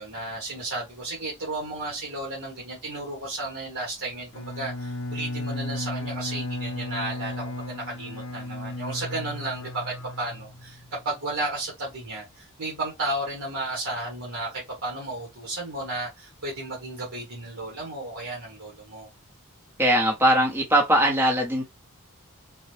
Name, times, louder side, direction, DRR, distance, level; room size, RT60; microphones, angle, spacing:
voice 1, 0.0-19.1, right 2 dB, 65° right, 1.4 m, -33 dB
Bowed string instrument, 4.3-10.9, left 1 dB, 70° left, 0.5 m, -34 dB
voice 2, 19.8-21.6, right 1 dB, 10° right, 0.7 m, -20 dB
3.9 x 2.1 x 3.1 m
head